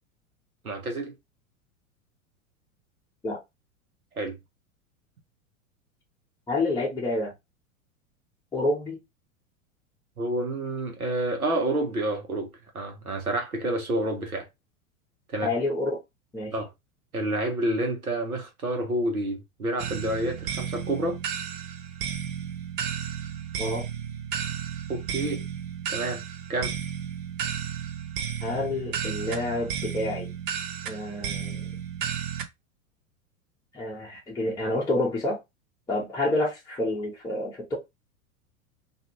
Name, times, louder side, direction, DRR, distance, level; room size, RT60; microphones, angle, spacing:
voice 1, 0.6-1.1 4.1-4.4 10.2-14.5 15.3-15.5 16.5-16.7 17.1-21.2 24.9-25.4 25.9-26.2 26.5-26.7, right 1 dB, 85° right, 1.0 m, -29 dB
voice 2, 6.5-7.3 8.5-9.0 15.4-16.0 16.3-16.5 23.6-23.8 28.4-30.3 30.9-31.6 33.7-35.4 35.9-37.7, left 2 dB, 10° left, 0.8 m, -28 dB
sound 1, 19.8-32.5, right 8 dB, 40° right, 0.5 m, -33 dB
2.6 x 2.4 x 2.9 m
figure-of-eight pair, 90°, 42 cm